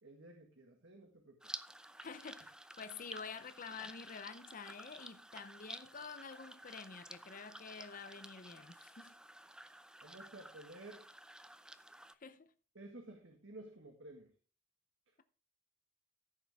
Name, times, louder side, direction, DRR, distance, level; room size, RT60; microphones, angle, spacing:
voice 1, 0.0-1.5 10.0-11.0 12.7-14.3, right 2 dB, 75° right, 1.7 m, -53 dB
sound 1, 1.4-12.1, right 1 dB, 5° right, 0.4 m, -52 dB
voice 2, 2.0-9.2 12.2-12.5, left 5 dB, 45° left, 0.7 m, -49 dB
14.5 x 6.8 x 3.5 m
head